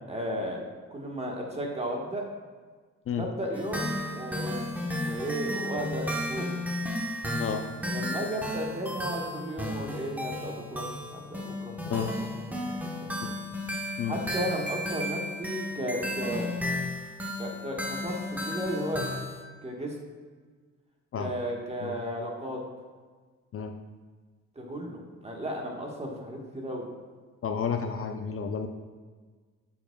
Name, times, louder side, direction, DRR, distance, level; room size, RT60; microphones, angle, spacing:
voice 1, 0.1-0.6 0.9-2.2 3.1-4.5 4.8-6.6 7.8-12.1 12.4-12.6 13.0-13.1 14.1-16.5 17.4-19.1 19.6-20.0 21.2-22.6 24.5-26.9, equal, 20° right, 0 dB, 1.3 m, -34 dB
sound 1, 3.5-19.4, left 1 dB, 5° right, 1.0 m, -34 dB
voice 2, 27.4-28.7, left 7 dB, 45° left, 5 dB, 0.5 m, -31 dB
7.5 x 6.9 x 2.3 m, 1.5 s
cardioid pair, 90°, 30 cm